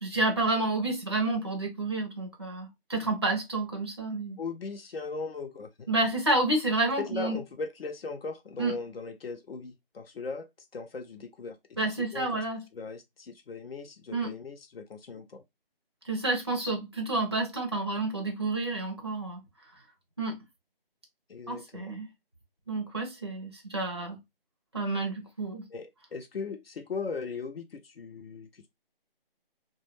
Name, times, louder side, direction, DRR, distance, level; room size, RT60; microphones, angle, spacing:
voice 1, 0.0-4.4 5.9-7.4 8.6-8.8 11.8-12.6 14.1-14.3 16.0-19.4 20.2-20.4 21.5-22.1 22.7-24.2 24.7-25.7, right 2 dB, 30° right, 0.4 m, -29 dB
voice 2, 4.4-5.9 7.0-12.3 12.7-15.4 21.3-21.9 25.7-28.7, left 4 dB, 75° left, 0.6 m, -38 dB
2.2 x 2.1 x 3.1 m
figure-of-eight pair, 170°, 30 cm